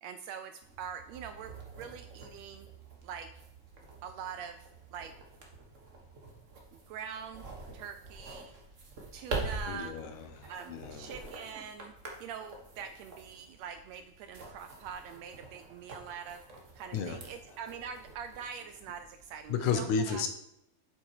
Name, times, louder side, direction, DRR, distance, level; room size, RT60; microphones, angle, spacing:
voice 1, 0.0-2.7 3.0-3.3 4.0-5.1 6.7-7.5 7.7-8.5 9.1-10.0 10.5-11.9 12.2-16.5 16.7-20.2, right 7 dB, 80° right, 9 dB, 1.6 m, -44 dB
sound 1, 0.6-19.7, right 3 dB, 45° right, 1.0 m, -46 dB
voice 2, 9.7-11.1 16.9-17.2 19.5-20.3, left 6 dB, 75° left, 6 dB, 2.3 m, -32 dB
7.7 x 7.4 x 4.8 m, 0.78 s
omnidirectional pair, 3.4 m